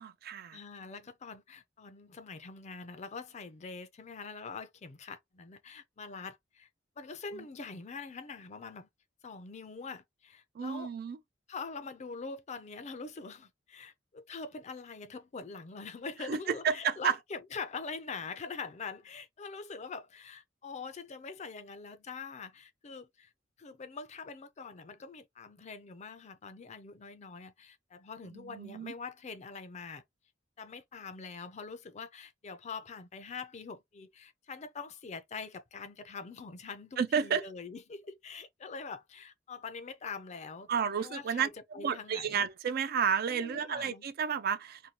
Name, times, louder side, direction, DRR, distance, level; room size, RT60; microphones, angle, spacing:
voice 1, 0.0-0.6 7.3-7.4 10.6-11.2 16.3-17.1 28.5-28.9 37.0-37.4 40.7-41.5 41.8-44.8, right 7 dB, 55° right, 0.4 m, -31 dB
voice 2, 0.5-6.7 7.0-8.9 9.2-10.9 11.5-23.3 23.6-30.0 30.6-40.7 41.0-42.4 43.3-44.0, left 4 dB, 35° left, 0.5 m, -44 dB
2.7 x 2.2 x 2.8 m
head